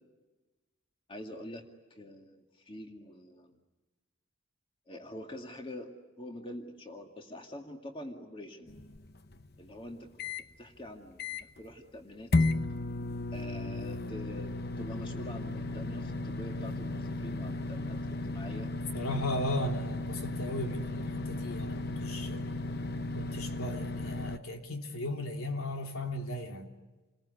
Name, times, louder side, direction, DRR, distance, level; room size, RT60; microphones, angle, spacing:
voice 1, 1.1-1.6 1.9-3.6 4.9-8.7 9.6-10.1 10.6-12.3 13.3-18.7, left 1 dB, 25° left, 2.2 m, -45 dB
sound 1, 8.7-10.4 10.9-11.0 11.2-11.7 12.3-24.4, left 2 dB, 45° left, 0.9 m, -34 dB
voice 2, 18.9-22.5 23.1-26.7, left 1 dB, 85° left, 3.4 m, -36 dB
28.5 x 21.0 x 9.8 m
head